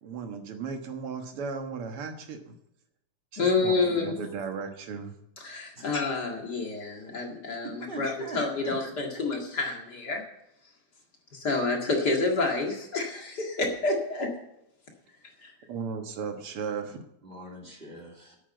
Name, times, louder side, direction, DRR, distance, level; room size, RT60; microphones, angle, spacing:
voice 1, 0.0-2.6 3.3-5.1 15.7-17.0, right 5 dB, 85° right, 5 dB, 2.4 m, -36 dB
voice 2, 3.4-4.1 5.4-10.2 11.3-14.3 15.4-15.5, left 3 dB, 50° left, 1 dB, 2.5 m, -28 dB
voice 3, 7.6-8.8 17.2-18.4, right 1 dB, 25° right, 0 dB, 2.9 m, -42 dB
9.5 x 8.7 x 8.0 m, 0.80 s
omnidirectional pair, 2.4 m